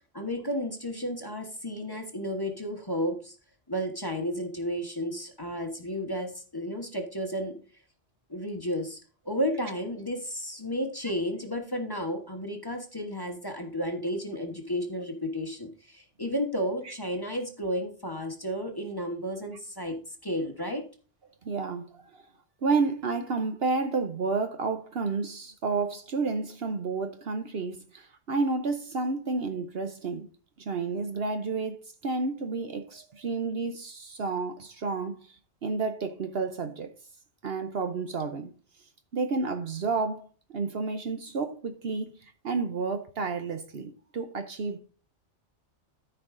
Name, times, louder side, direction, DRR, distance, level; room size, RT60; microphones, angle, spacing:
voice 1, 0.1-3.3 3.7-7.6 8.3-9.0 9.2-20.9, equal, 20° left, 1.2 m, -32 dB
voice 2, 21.4-22.2 22.6-30.3 30.6-35.2 35.6-36.9 37.4-38.5 39.1-44.8, right 4 dB, 60° right, 1.0 m, -31 dB
13.5 x 4.8 x 3.7 m
omnidirectional pair, 1.2 m